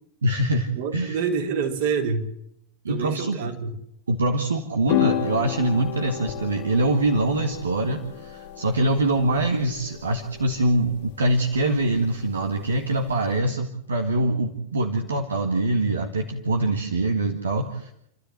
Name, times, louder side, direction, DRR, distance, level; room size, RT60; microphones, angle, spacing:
voice 1, 0.2-1.2 2.8-3.4 4.1-17.9, right 2 dB, 70° right, 3 dB, 2.1 m, -24 dB
voice 2, 0.7-2.3 2.9-3.7, right 5 dB, 50° right, 4 dB, 3.8 m, -27 dB
sound 1, 4.9-13.3, left 11 dB, 45° left, 2.4 m, -32 dB
30.0 x 13.0 x 7.7 m, 0.76 s
figure-of-eight pair, 90°, 0 cm